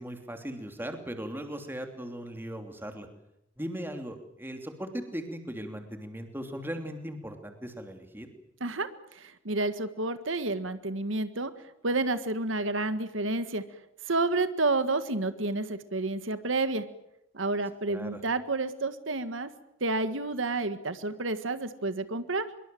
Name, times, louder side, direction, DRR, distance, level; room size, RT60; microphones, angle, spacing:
voice 1, 0.0-3.1 3.6-8.3 17.9-18.2, equal, 10° right, 5 dB, 3.1 m, -38 dB
voice 2, 8.6-11.5 11.8-13.6 14.1-16.8 17.3-19.5 19.8-22.5, right 2 dB, 80° right, 11 dB, 1.7 m, -30 dB
25.0 x 23.0 x 7.8 m, 0.84 s
head